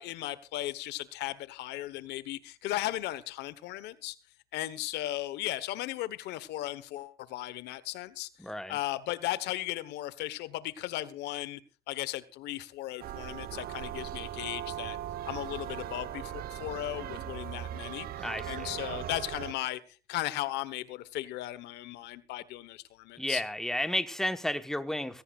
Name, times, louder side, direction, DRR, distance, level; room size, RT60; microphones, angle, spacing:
voice 1, 0.0-4.2 4.5-8.3 8.7-11.6 11.9-15.0 15.3-19.8 20.1-23.4, left 15 dB, 85° left, 1.2 m, -36 dB
voice 2, 8.4-8.8 18.2-18.7 23.2-25.2, left 1 dB, 5° left, 1.2 m, -32 dB
sound 1, 13.0-19.5, right 11 dB, 65° right, 1.0 m, -39 dB
18.5 x 16.5 x 2.5 m
cardioid pair, 110°, 17 cm